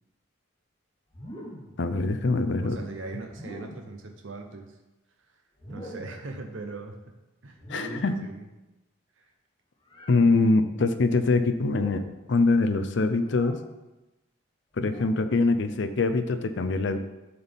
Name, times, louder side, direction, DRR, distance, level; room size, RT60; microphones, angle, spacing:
sound 1, 1.1-1.8 3.3-4.0 5.6-6.3 7.6-8.3 9.9-10.2 11.6-12.1 13.3-13.6 14.7-15.4, equal, 20° left, 1.0 m, -42 dB
voice 1, 1.8-2.8 7.7-8.2 10.1-13.6 14.8-17.0, left 3 dB, 60° left, 10 dB, 0.5 m, -24 dB
voice 2, 2.6-4.8 5.3-5.4 5.7-7.0 7.4-8.5 9.2-9.3, right 3 dB, 65° right, 4 dB, 0.7 m, -40 dB
11.0 x 4.1 x 3.5 m, 1.0 s
head